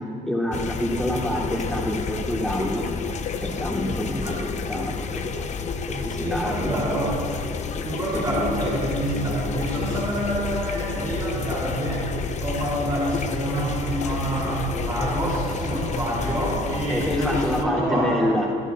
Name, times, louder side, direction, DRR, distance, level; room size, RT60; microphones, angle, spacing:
voice 1, 0.2-2.9 3.4-5.3 5.9-6.7 8.1-8.2 16.9-18.5, left 1 dB, ahead, -5 dB, 3.2 m, -27 dB
sound 1, 0.5-17.6, left 5 dB, 45° left, 0.9 m, -30 dB
voice 2, 5.9-7.3 7.8-12.1 12.3-18.3, right 1 dB, 25° right, -7 dB, 3.3 m, -27 dB
25.5 x 11.5 x 2.5 m, 2.8 s
cardioid pair, 110°, 17 cm